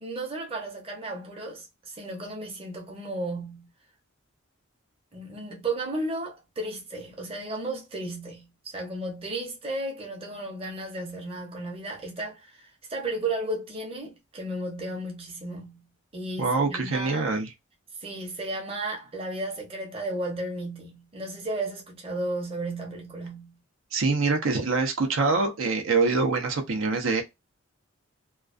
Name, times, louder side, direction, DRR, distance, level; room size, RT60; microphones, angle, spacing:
voice 1, 0.0-3.7 5.1-17.3 18.0-23.6, right 2 dB, 25° right, 0.7 m, -34 dB
voice 2, 16.4-17.5 23.9-27.2, right 3 dB, 75° right, 0.6 m, -25 dB
2.3 x 2.3 x 2.4 m
head